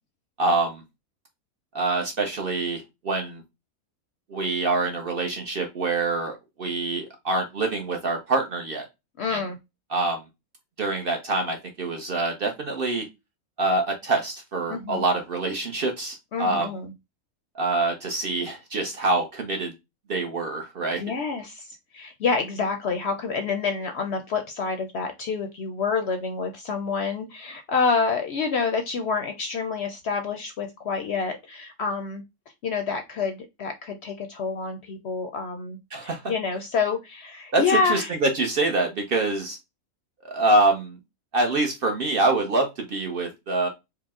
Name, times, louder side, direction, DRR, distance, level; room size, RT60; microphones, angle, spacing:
voice 1, 0.4-0.8 1.7-3.4 4.3-6.3 6.6-8.8 9.3-9.4 9.9-10.2 10.8-13.1 13.6-16.7 17.6-19.7 20.1-21.0 35.9-36.2 37.5-39.6 40.2-41.0 41.3-43.7, right 2 dB, 50° right, 3 dB, 0.7 m, -25 dB
voice 2, 9.2-9.6 14.7-15.0 16.3-16.9 21.0-32.2 32.6-38.2, left 5 dB, 65° left, 6 dB, 0.7 m, -28 dB
4.7 x 2.0 x 3.5 m, 0.22 s
omnidirectional pair, 1.5 m